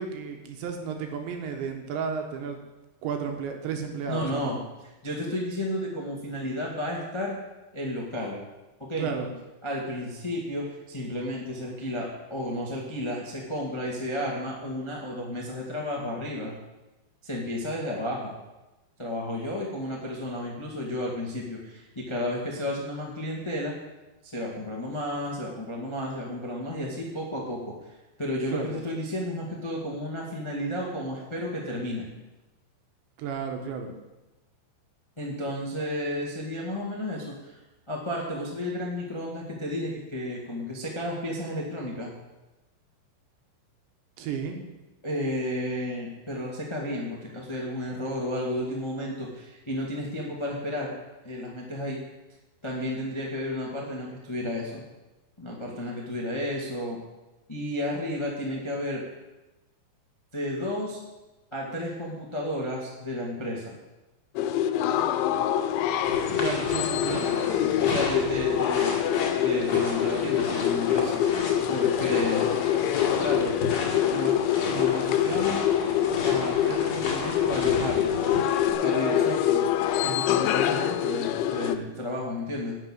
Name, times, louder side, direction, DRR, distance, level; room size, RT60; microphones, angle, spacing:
voice 1, 0.0-2.6 3.0-4.6 9.0-9.3 28.5-28.7 33.2-33.9 44.2-44.6 66.4-67.3, right 6 dB, 75° right, 4 dB, 3.7 m, -33 dB
voice 2, 4.1-4.5 5.0-7.4 7.7-8.4 8.8-9.1 9.6-16.5 17.2-18.3 19.0-23.7 24.2-27.7 28.2-32.1 35.2-37.5 37.9-42.1 45.0-50.9 51.2-52.0 52.6-54.8 55.4-57.0 57.5-59.0 60.3-61.0 61.5-63.7 67.8-68.9 69.4-71.2 71.7-72.5 73.2-73.6 74.1-74.4 74.7-75.7 76.2-78.2 78.8-79.7 80.0-82.7, left 1 dB, 30° left, -2 dB, 0.5 m, -32 dB
sound 1, 64.4-81.8, left 10 dB, 85° left, 3.1 m, -25 dB
sound 2, 66.0-78.7, left 2 dB, 45° left, 2.9 m, -34 dB
11.0 x 7.6 x 8.9 m, 1.0 s
omnidirectional pair, 5.2 m